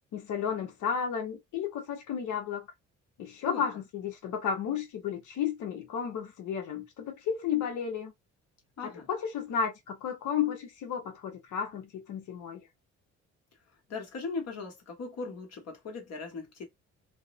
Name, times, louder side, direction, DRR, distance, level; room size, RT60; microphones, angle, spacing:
voice 1, 0.1-2.7 3.2-8.1 8.8-12.6, left 7 dB, 75° left, 0.9 m, -33 dB
voice 2, 13.9-16.6, left 4 dB, 60° left, 1.2 m, -38 dB
2.5 x 2.0 x 2.4 m
cardioid pair, 90°, 30 cm